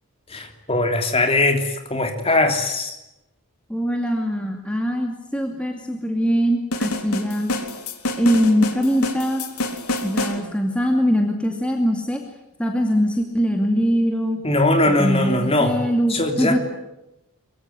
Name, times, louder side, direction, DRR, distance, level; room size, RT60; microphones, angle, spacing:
voice 1, 0.3-3.0 14.4-15.8 16.1-16.6, left 2 dB, 25° left, 5 dB, 3.3 m, -20 dB
voice 2, 3.7-7.5 8.2-9.4 10.0-12.2 12.6-14.4 14.9-16.6, equal, 5° left, 3 dB, 2.4 m, -22 dB
sound 1, 6.7-10.4, left 2 dB, 85° left, 3.5 m, -27 dB
23.5 x 23.0 x 9.8 m, 0.89 s
head